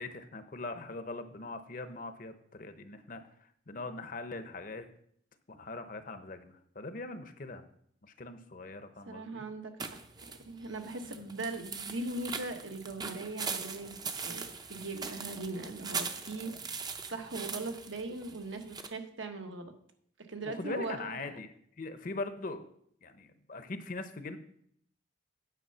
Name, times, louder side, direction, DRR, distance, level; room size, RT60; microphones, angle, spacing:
voice 1, 0.0-3.2 3.7-4.9 5.5-7.7 8.0-9.4 11.0-11.3 20.4-21.5 21.8-22.7 23.0-24.4, left 3 dB, 45° left, 9 dB, 0.8 m, -41 dB
voice 2, 9.1-10.0 10.4-16.5 17.1-19.7 20.3-21.4, right 2 dB, 75° right, 5 dB, 1.4 m, -40 dB
sound 1, 9.8-18.9, right 5 dB, 20° right, 0.6 m, -41 dB
9.3 x 6.6 x 5.6 m, 0.67 s
head